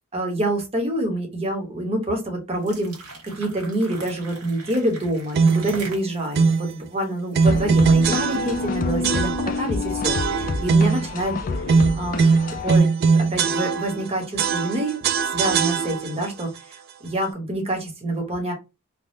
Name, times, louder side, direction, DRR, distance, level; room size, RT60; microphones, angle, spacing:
voice 1, 0.1-3.0 3.4-9.3 9.6-11.4 12.0-12.3 12.6-12.9 13.2-18.5, right 1 dB, 30° right, 2 dB, 1.0 m, -26 dB
sound 1, 2.5-7.8, right 3 dB, 85° right, 1.2 m, -41 dB
sound 2, 5.3-5.8 6.3-6.7 7.3-8.7 9.0-9.7 10.0-11.1 11.7-14.1 14.4-16.3, right 5 dB, 45° right, 0.3 m, -20 dB
sound 3, 7.5-12.8, left 3 dB, 40° left, 0.3 m, -28 dB
3.3 x 2.2 x 2.7 m, 0.25 s
head